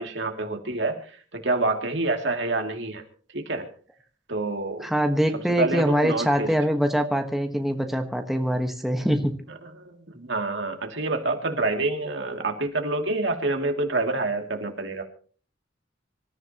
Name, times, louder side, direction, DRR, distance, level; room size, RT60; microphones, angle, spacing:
voice 1, 0.0-3.0 3.3-3.7 4.3-4.9 5.6-6.5 9.6-15.0, right 2 dB, 65° right, 3 dB, 2.7 m, -27 dB
voice 2, 4.8-9.3, equal, ahead, 4 dB, 1.4 m, -24 dB
26.0 x 14.0 x 3.0 m, 0.43 s
head